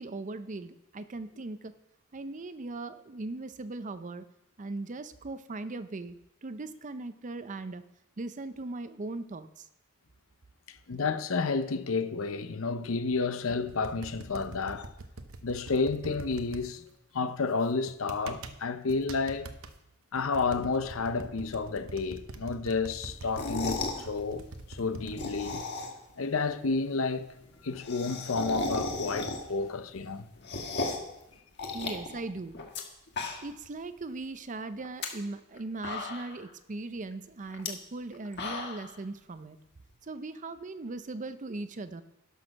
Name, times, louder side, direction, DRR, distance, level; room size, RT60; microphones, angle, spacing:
voice 1, 0.0-1.7 2.1-4.2 4.6-7.8 8.2-9.7 31.7-32.6 33.4-39.6 40.0-42.0, right 2 dB, 35° right, 0.6 m, -39 dB
voice 2, 10.7-14.9 15.4-16.8 17.1-19.5 20.1-25.6 26.2-27.3 27.6-30.3, left 4 dB, 70° left, 0.7 m, -31 dB
sound 1, 13.7-16.6 17.9-18.6 18.9-19.7 20.1-25.6, right 2 dB, 80° right, 0.9 m, -44 dB
sound 2, 23.2-24.0 25.0-26.1 26.5-26.6 26.8-26.9 27.1-27.2 27.4-29.6 30.0-31.1 31.6-32.8 33.1-33.7 34.0-34.1 34.8-35.1 35.5-35.6 35.8-36.5 37.5-37.7 38.1-38.9, left 3 dB, 55° left, 1.5 m, -35 dB
11.5 x 6.4 x 5.9 m
head